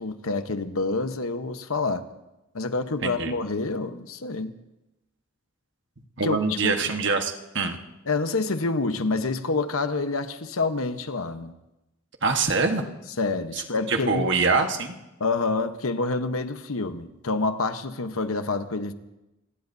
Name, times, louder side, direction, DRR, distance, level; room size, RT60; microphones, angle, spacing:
voice 1, 0.0-2.0 2.5-4.5 6.2-6.8 8.1-11.5 13.2-14.3 15.2-18.9, left 3 dB, 80° left, 9 dB, 1.0 m, -27 dB
voice 2, 3.0-3.3 6.2-7.8 12.2-12.8 13.9-14.9, right 4 dB, 55° right, 5 dB, 1.3 m, -24 dB
27.0 x 19.0 x 2.7 m, 0.95 s
head